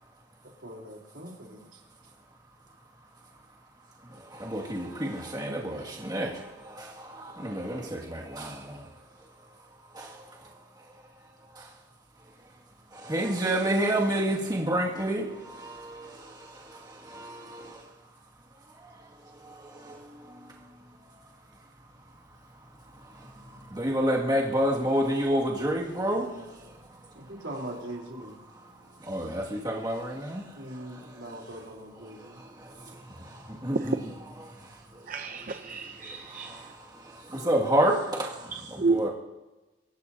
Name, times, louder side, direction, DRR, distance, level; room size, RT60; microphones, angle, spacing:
voice 1, 0.6-1.6 27.1-28.3 30.6-32.4, right 1 dB, 80° right, -1 dB, 3.7 m, -41 dB
voice 2, 4.5-6.3 7.4-7.8 8.1-8.5 13.1-15.2 23.8-26.3 29.1-30.4 33.6-33.8 37.4-38.0 38.9-39.1, right 1 dB, 20° right, -3 dB, 2.2 m, -27 dB
voice 3, 35.1-36.7 38.5-39.1, right 3 dB, 45° right, 7 dB, 0.7 m, -30 dB
24.0 x 17.0 x 2.8 m, 1.1 s
head